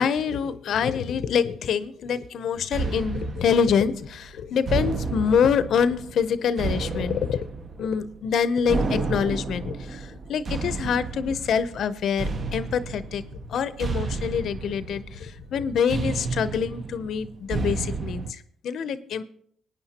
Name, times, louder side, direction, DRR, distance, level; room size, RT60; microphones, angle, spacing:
voice 1, 0.0-7.5 7.8-13.2 13.5-19.2, left 7 dB, 70° left, 14 dB, 0.6 m, -25 dB
sound 1, 2.7-18.3, right 4 dB, 45° right, 0.8 m, -32 dB
19.0 x 9.5 x 2.9 m, 0.65 s
cardioid pair, 90°, 0 cm